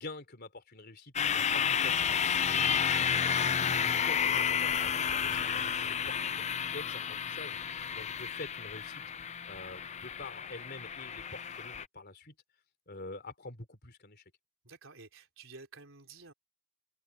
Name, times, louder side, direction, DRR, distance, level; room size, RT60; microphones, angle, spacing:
voice 1, 0.0-3.1 3.4-12.3 12.9-14.2, left 2 dB, 50° left, 3.5 m, -47 dB
sound 1, 1.2-11.9, left 7 dB, 35° left, 0.5 m, -31 dB
voice 2, 14.6-16.3, right 3 dB, 65° right, 4.4 m, -51 dB
open air
head